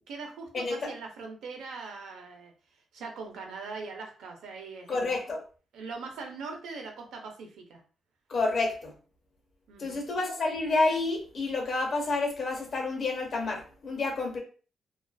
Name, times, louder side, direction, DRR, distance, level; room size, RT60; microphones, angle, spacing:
voice 1, 0.1-2.5 2.9-5.1 5.7-7.8 9.7-10.0, right 4 dB, 90° right, 3 dB, 0.6 m, -41 dB
voice 2, 4.9-5.4 8.3-8.9 9.8-14.4, left 3 dB, 40° left, 1 dB, 0.7 m, -29 dB
2.4 x 2.3 x 2.3 m, 0.38 s
cardioid pair, 150°, 0 cm